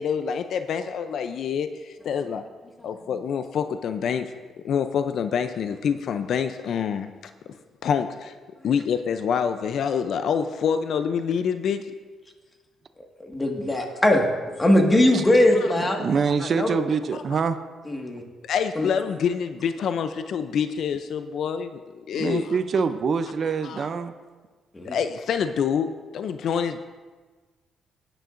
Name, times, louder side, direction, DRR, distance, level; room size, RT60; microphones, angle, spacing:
voice 1, 0.0-2.5 2.8-4.3 4.6-7.1 7.8-8.3 8.6-11.9 17.1-17.2 18.4-22.5 23.6-23.9 24.8-25.9 26.1-26.8, left 7 dB, 65° left, 9 dB, 0.5 m, -26 dB
voice 2, 13.2-14.2 14.6-16.0 16.5-16.8 17.9-18.2 18.8-18.9 24.7-25.0, left 1 dB, 20° left, 2 dB, 1.7 m, -20 dB
voice 3, 16.0-17.6 22.1-24.1, right 5 dB, 50° right, 11 dB, 0.5 m, -25 dB
17.5 x 9.0 x 2.6 m, 1.4 s
cardioid pair, 90°, 0 cm